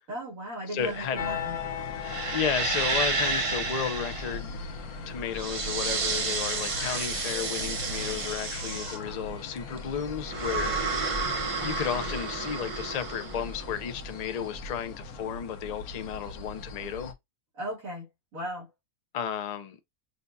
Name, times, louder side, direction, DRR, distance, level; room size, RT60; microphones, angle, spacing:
voice 1, 0.1-1.6 11.6-12.1 17.6-18.1 18.3-18.7, right 1 dB, 70° right, 2.5 m, -37 dB
voice 2, 0.7-1.2 2.3-4.6 5.1-10.8 11.6-17.1 19.1-19.8, left 8 dB, 50° left, 0.5 m, -33 dB
sound 1, 0.8-14.4, right 4 dB, 40° right, 0.5 m, -31 dB
sound 2, 1.1-17.1, left 4 dB, 90° left, 1.3 m, -39 dB
6.7 x 2.3 x 2.6 m
omnidirectional pair, 1.5 m